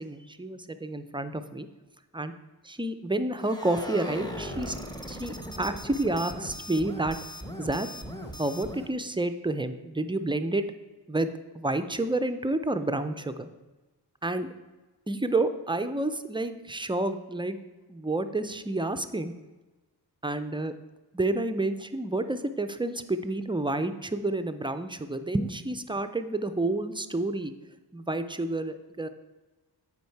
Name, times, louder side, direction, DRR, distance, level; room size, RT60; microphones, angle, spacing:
voice 1, 0.0-1.7 2.1-2.3 2.6-4.7 5.1-7.2 7.6-7.9 8.4-10.7 11.1-13.5 14.2-14.5 15.1-17.6 17.9-19.3 20.2-20.7 21.1-27.5 27.9-29.1, right 2 dB, 10° right, 9 dB, 0.4 m, -29 dB
sound 1, 3.4-8.9, equal, 10° left, 0.8 m, -38 dB
8.3 x 4.7 x 4.5 m, 1.2 s
cardioid pair, 85°, 44 cm